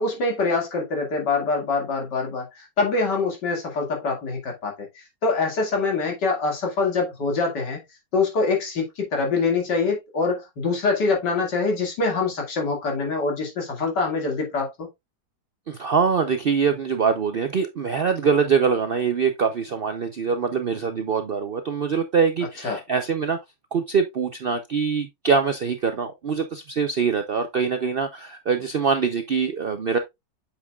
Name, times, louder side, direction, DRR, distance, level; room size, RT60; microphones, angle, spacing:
voice 1, 0.0-7.8 8.1-14.9 22.6-22.8, left 4 dB, 90° left, 2.8 m, -24 dB
voice 2, 15.7-23.4 23.7-30.0, right 6 dB, 65° right, 0.5 m, -23 dB
8.2 x 5.9 x 2.3 m
omnidirectional pair, 1.8 m